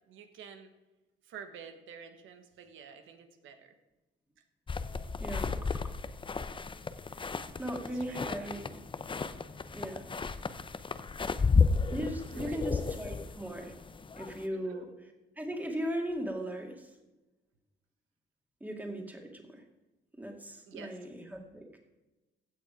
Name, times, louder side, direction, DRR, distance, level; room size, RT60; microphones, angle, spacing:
voice 1, 0.1-0.7 1.2-3.7 7.7-8.5 12.3-12.9 14.5-14.9 20.7-20.9, right 6 dB, 80° right, 7 dB, 1.3 m, -49 dB
sound 1, 4.7-14.5, left 4 dB, 25° left, 0.7 m, -33 dB
voice 2, 5.2-5.5 7.1-7.3 7.6-8.7 9.7-10.1 11.9-13.7 14.2-14.9 15.4-17.0 18.6-19.6 20.1-21.8, equal, 10° right, 2 dB, 2.2 m, -38 dB
15.5 x 6.8 x 5.0 m, 1.1 s
cardioid pair, 90°, 20 cm